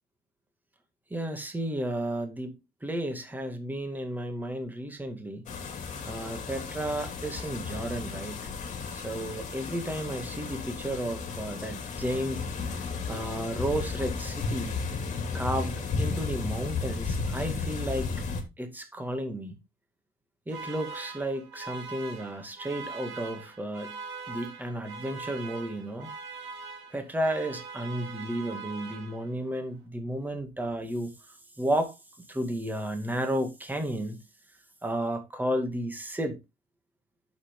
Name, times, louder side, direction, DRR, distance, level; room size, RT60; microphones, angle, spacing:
voice 1, 1.1-2.5 2.8-5.4 6.0-8.5 8.9-12.4 12.8-14.8 15.3-18.1 18.6-19.5 20.5-24.0 24.3-26.1 26.9-31.1 31.6-31.9 32.3-34.2 34.8-36.4, right 1 dB, 10° right, 2.1 m, -33 dB
sound 1, 5.5-18.4, left 4 dB, 45° left, 2.6 m, -34 dB
sound 2, 20.5-29.5, right 4 dB, 90° right, 2.6 m, -42 dB
8.5 x 7.1 x 3.7 m
cardioid pair, 110°, 17 cm